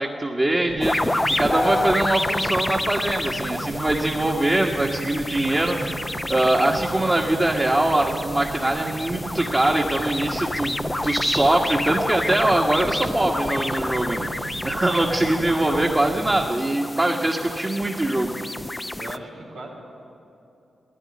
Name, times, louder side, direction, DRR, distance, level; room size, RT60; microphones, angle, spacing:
voice 1, 0.0-10.7 11.0-14.3 14.6-18.3, right 1 dB, 30° right, -1 dB, 1.3 m, -22 dB
sound 1, 0.7-16.5, right 5 dB, 65° right, 0.5 m, -37 dB
sound 2, 0.8-19.2, left 1 dB, 20° left, 0.5 m, -29 dB
voice 2, 19.0-19.7, right 2 dB, 90° right, -2 dB, 2.8 m, -38 dB
12.5 x 9.8 x 9.6 m, 2.8 s
supercardioid pair, 45°, 0 cm